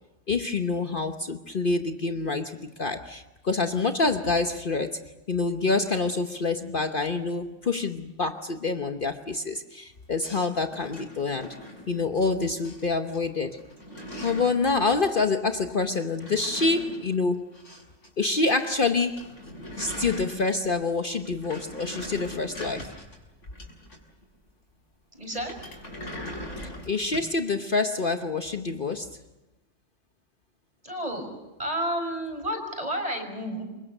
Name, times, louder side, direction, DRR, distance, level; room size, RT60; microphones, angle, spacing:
voice 1, 0.3-5.0 5.3-11.6 11.9-13.6 14.2-17.5 18.2-19.2 19.8-22.9 26.9-29.2, left 3 dB, 45° left, 6 dB, 1.2 m, -27 dB
sound 1, 10.2-12.3 12.6-13.2 13.5-14.7 15.9-18.1 18.3-18.4 18.7-18.8 19.0-20.8 21.1-24.2 25.3-27.4, equal, 80° left, 6.5 m, -41 dB
voice 2, 25.1-25.5 30.8-31.3 31.6-33.6, right 1 dB, 30° right, 4 dB, 5.9 m, -31 dB
28.5 x 25.0 x 6.6 m, 1.1 s
omnidirectional pair, 1.3 m